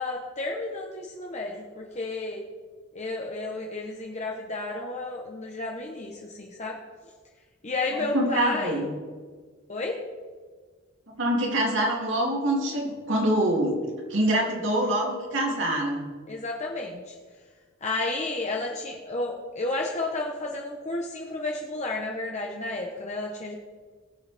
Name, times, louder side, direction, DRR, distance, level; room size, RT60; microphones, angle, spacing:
voice 1, 0.0-2.4 2.9-6.8 7.6-8.8 9.7-10.0 16.3-17.1 17.8-23.6, left 2 dB, 35° left, 0 dB, 1.1 m, -32 dB
voice 2, 8.1-8.9 11.2-13.7 14.1-16.0, right 1 dB, 65° right, -1 dB, 3.1 m, -25 dB
21.0 x 7.8 x 3.6 m, 1.5 s
head